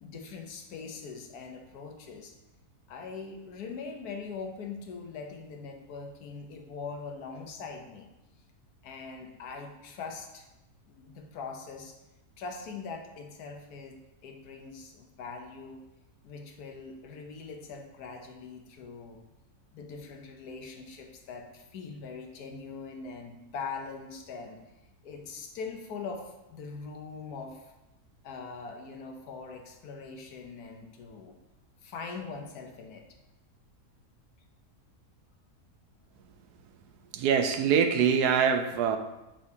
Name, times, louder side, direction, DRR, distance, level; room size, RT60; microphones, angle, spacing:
voice 1, 0.0-2.3 2.9-8.1 8.8-10.5 10.9-12.0 12.4-15.8 16.2-19.2 19.7-24.6 25.0-27.7 28.2-31.4 31.8-33.0, left 4 dB, 75° left, 3 dB, 1.3 m, -42 dB
voice 2, 37.1-39.0, right 7 dB, 90° right, 7 dB, 1.2 m, -24 dB
6.3 x 5.8 x 2.8 m, 0.97 s
omnidirectional pair, 1.7 m